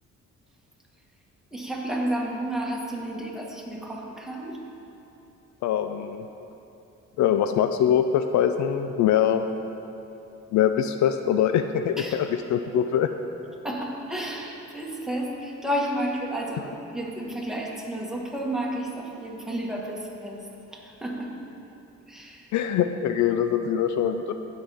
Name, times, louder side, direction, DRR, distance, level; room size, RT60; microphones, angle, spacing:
voice 1, 1.5-4.6 12.0-12.2 13.6-21.4 22.1-22.5, right 1 dB, ahead, -2 dB, 1.5 m, -31 dB
voice 2, 5.6-6.3 7.2-9.4 10.5-13.1 22.5-24.3, left 9 dB, 70° left, 8 dB, 0.4 m, -23 dB
15.0 x 5.7 x 3.5 m, 2.9 s
cardioid pair, 90°, 30 cm